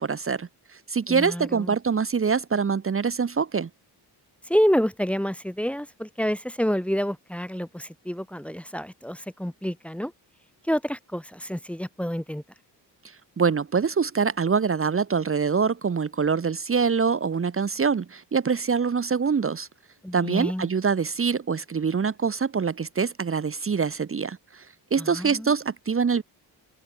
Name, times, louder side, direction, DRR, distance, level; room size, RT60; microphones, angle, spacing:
voice 1, 0.0-3.7 13.4-19.7 20.1-26.2, right 5 dB, 30° right, 1.5 m, -25 dB
voice 2, 1.1-1.7 4.5-10.1 10.6-12.4 20.0-20.7 25.0-25.5, equal, 5° left, 2.0 m, -28 dB
open air
wide cardioid pair, 165°, 41 cm